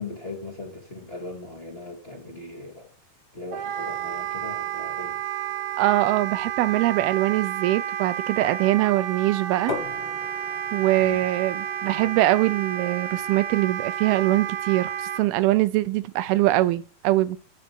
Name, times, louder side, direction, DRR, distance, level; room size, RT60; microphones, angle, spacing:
voice 1, 0.0-2.9 3.3-5.2 11.0-11.2 14.3-14.4, left 3 dB, 20° left, 2.2 m, -39 dB
Wind instrument woodwind instrument, 3.5-15.2, right 10 dB, 70° right, 2.0 m, -31 dB
voice 2, 5.8-9.7 10.7-17.4, right 16 dB, 90° right, 2.6 m, -23 dB
sound 1, 9.7-15.3, left 4 dB, 75° left, 3.9 m, -41 dB
12.0 x 4.9 x 5.9 m
omnidirectional pair, 4.3 m